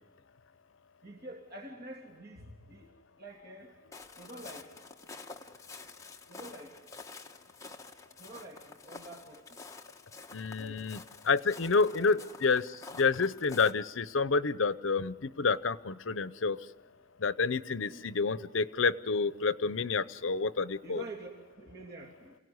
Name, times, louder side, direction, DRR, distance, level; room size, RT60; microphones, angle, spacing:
voice 1, 1.0-3.7 4.2-4.7 6.3-6.8 8.2-9.6 10.6-10.9 11.6-12.3 17.8-18.1 20.8-21.3 21.6-22.4, right 1 dB, 55° right, 1 dB, 2.9 m, -47 dB
Walk footsteps, 3.9-13.7, left 3 dB, 15° left, 1.2 m, -49 dB
voice 2, 10.3-11.0 11.2-12.7 12.9-16.6 17.2-21.0, left 4 dB, 75° left, 16 dB, 0.8 m, -29 dB
28.0 x 17.5 x 9.6 m, 1.4 s
head